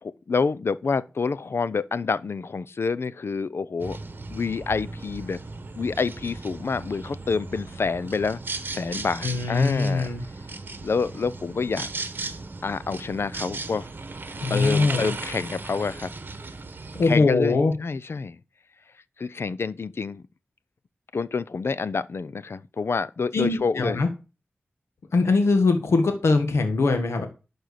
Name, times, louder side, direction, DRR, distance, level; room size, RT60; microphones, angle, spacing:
voice 1, 0.0-4.0 4.3-5.4 5.8-8.4 8.7-10.1 10.8-11.9 12.6-13.9 14.5-16.1 17.0-18.4 19.2-20.2 21.1-24.0, left 4 dB, 65° left, 0.6 m, -28 dB
Moscow garden ambience, 3.8-17.2, right 3 dB, 50° right, 1.4 m, -36 dB
voice 2, 9.2-10.2 14.4-15.1 16.9-17.7 23.3-24.1 25.1-27.3, left 3 dB, 90° left, 1.3 m, -22 dB
11.5 x 4.5 x 6.7 m
wide cardioid pair, 65°, 4 cm